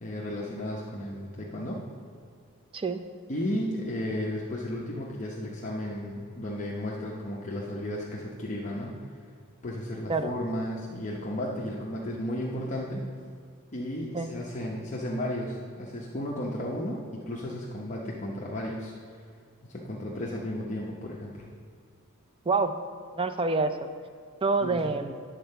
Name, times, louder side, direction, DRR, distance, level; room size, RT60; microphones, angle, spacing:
voice 1, 0.0-1.9 3.3-9.0 9.6-13.1 13.7-19.2 19.6-21.5 24.6-24.8, left 1 dB, 35° left, -4 dB, 0.8 m, -34 dB
voice 2, 22.5-22.8 23.1-23.9 24.4-25.1, right 3 dB, 25° right, 9 dB, 0.4 m, -27 dB
9.1 x 4.4 x 6.6 m, 2.2 s
head